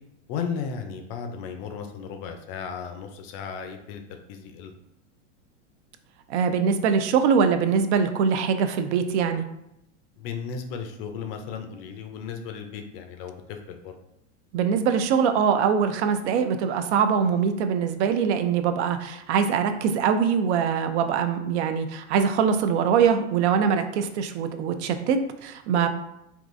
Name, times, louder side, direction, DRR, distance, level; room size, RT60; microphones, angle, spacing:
voice 1, 0.3-4.7 10.2-14.0, left 6 dB, 45° left, 6 dB, 0.4 m, -35 dB
voice 2, 6.3-9.4 14.5-25.9, right 6 dB, 65° right, 8 dB, 0.5 m, -23 dB
3.7 x 2.4 x 2.5 m, 0.81 s
supercardioid pair, 130°, 38 cm